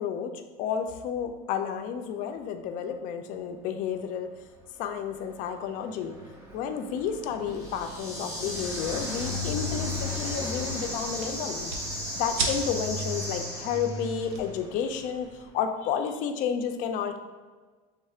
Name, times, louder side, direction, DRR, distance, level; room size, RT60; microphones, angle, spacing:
voice 1, 0.0-4.3 4.8-6.1 6.5-11.7 12.1-17.2, left 7 dB, 50° left, 6 dB, 0.4 m, -31 dB
Car passing by, 4.4-15.4, left 3 dB, 15° right, 0.6 m, -38 dB
sound 1, 7.5-14.2, equal, 5° left, 1.4 m, -36 dB
sound 2, 8.8-15.5, right 3 dB, 80° right, 0.7 m, -39 dB
5.4 x 3.5 x 2.4 m, 1.4 s
cardioid pair, 160°, 18 cm